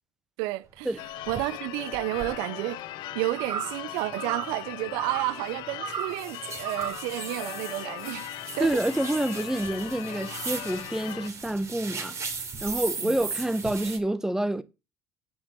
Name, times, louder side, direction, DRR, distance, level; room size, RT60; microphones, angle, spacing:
voice 1, 0.4-1.0 1.3-2.8 3.1-8.3 8.6-8.7 13.0-13.2, right 18 dB, 75° right, 0.6 m, -31 dB
sound 1, 0.8-0.9 1.3-1.4 1.9-2.3 2.8-2.9 3.4-3.5 3.7-14.0, right 4 dB, 35° right, 3.1 m, -38 dB
Church bell / Car / Alarm, 1.0-11.3, left 15 dB, 70° left, 0.7 m, -39 dB
sound 2, 3.4-3.8 4.2-4.6 5.0-5.4 5.8-6.2 6.6-7.1, right 8 dB, 55° right, 1.3 m, -34 dB
voice 2, 8.6-12.2 12.6-14.6, right 1 dB, 5° right, 1.1 m, -28 dB
8.5 x 6.3 x 5.6 m
hypercardioid pair, 70°, 8 cm